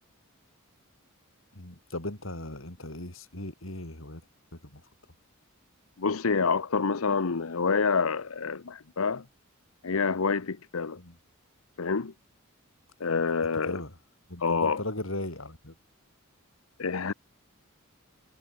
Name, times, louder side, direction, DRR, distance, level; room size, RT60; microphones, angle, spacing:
voice 1, 1.5-4.2 4.5-4.9 11.0-11.2 13.6-14.0 14.3-15.7, left 1 dB, 70° left, 4.8 m, -38 dB
voice 2, 6.0-9.2 9.8-11.0 11.8-12.1 13.0-13.8 14.4-14.8 16.8-17.1, left 5 dB, 85° left, 0.9 m, -27 dB
head